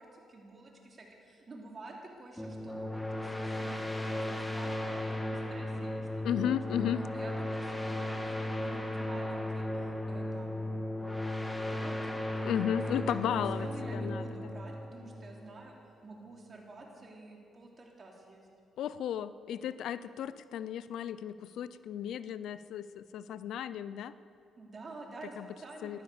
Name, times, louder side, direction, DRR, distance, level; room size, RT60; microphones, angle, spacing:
voice 1, 0.0-6.2 6.7-6.8 7.1-11.2 11.7-12.5 12.9-15.8 16.0-18.5 24.6-26.0, right 2 dB, 35° right, 0 dB, 3.2 m, -49 dB
sound 1, 2.4-15.7, left 1 dB, 10° left, 1.5 m, -36 dB
voice 2, 6.2-7.0 12.4-13.7 13.9-14.2 18.8-24.1 25.4-25.5 25.8-26.0, left 9 dB, 75° left, 15 dB, 0.5 m, -34 dB
15.0 x 12.5 x 6.9 m, 2.6 s
cardioid pair, 90°, 0 cm